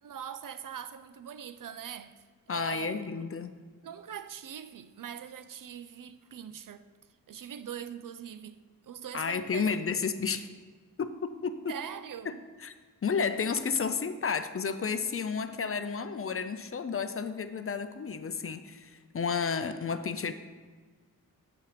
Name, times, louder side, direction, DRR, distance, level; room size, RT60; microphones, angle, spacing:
voice 1, 0.0-2.2 2.5-3.3 3.8-6.8 7.3-9.9 11.7-12.4, right 8 dB, 70° right, 0.5 m, -42 dB
voice 2, 2.5-3.6 9.1-10.5 11.0-11.8 12.3-12.4 12.6-12.7 13.0-20.3, left 5 dB, 40° left, 0.5 m, -32 dB
7.4 x 5.6 x 5.0 m
wide cardioid pair, 100°, 34 cm